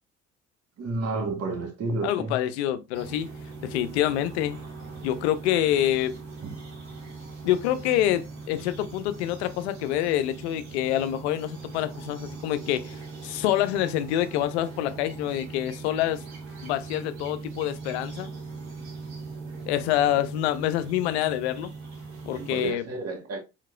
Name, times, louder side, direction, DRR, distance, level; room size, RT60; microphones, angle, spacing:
voice 1, 0.8-2.4 6.4-6.5 22.3-23.4, right 3 dB, 50° right, 1.5 m, -31 dB
voice 2, 2.0-3.3 3.6-4.6 5.0-6.1 7.4-13.0 13.2-16.2 16.6-18.3 19.7-21.7 22.3-22.8, left 12 dB, 85° left, 0.5 m, -26 dB
sound 1, 2.9-22.7, right 4 dB, 80° right, 1.7 m, -40 dB
4.6 x 3.7 x 2.4 m
hypercardioid pair, 55°, 32 cm